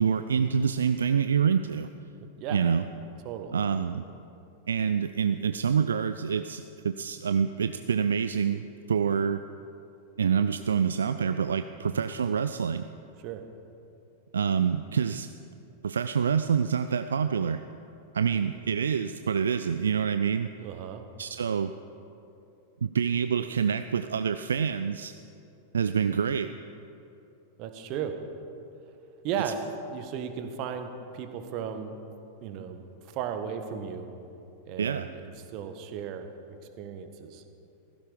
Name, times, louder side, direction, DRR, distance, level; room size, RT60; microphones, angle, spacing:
voice 1, 0.0-1.9 2.5-2.8 3.5-4.0 4.7-8.6 8.9-9.4 10.2-12.9 14.3-15.3 15.8-17.6 18.1-20.5 21.2-21.7 22.8-25.1 25.7-26.5 34.8-35.1, right 7 dB, 70° right, 10 dB, 0.4 m, -26 dB
voice 2, 3.2-3.6 11.8-12.0 13.2-13.4 18.2-18.4 20.6-21.0 27.6-28.2 29.2-29.6 29.9-31.9 32.4-34.1 34.7-36.3 36.8-37.4, right 8 dB, 40° right, 7 dB, 1.5 m, -35 dB
16.5 x 15.5 x 5.2 m, 2.8 s
figure-of-eight pair, 95°, 0 cm